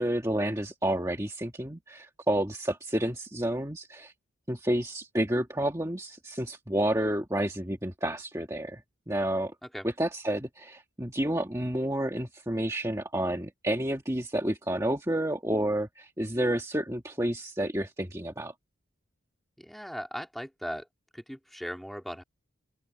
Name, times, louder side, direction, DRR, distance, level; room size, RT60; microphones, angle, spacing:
voice 1, 0.0-4.1 4.5-8.8 9.1-9.6 10.0-18.5, right 1 dB, 15° right, 1.7 m, -30 dB
voice 2, 19.6-20.9 21.1-22.2, equal, ahead, 3.2 m, -38 dB
open air
head